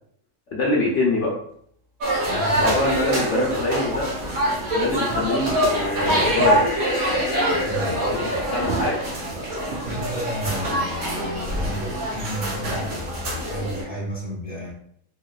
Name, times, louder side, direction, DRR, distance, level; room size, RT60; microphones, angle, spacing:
voice 1, 0.5-1.3 2.6-4.1 4.7-6.7 8.1-9.0, left 2 dB, 65° left, -3 dB, 0.9 m, -24 dB
sound 1, 1.3-1.4 2.1-10.1, right 3 dB, 60° right, 0.8 m, -37 dB
sound 2, 2.0-13.8, equal, 90° right, 1.3 m, -24 dB
voice 2, 2.2-2.7 7.6-8.5 9.9-14.7, equal, 5° right, -7 dB, 1.0 m, -33 dB
sound 3, 5.6-7.7, left 2 dB, 45° left, 0.5 m, -31 dB
2.8 x 2.7 x 2.3 m, 0.66 s
omnidirectional pair, 1.4 m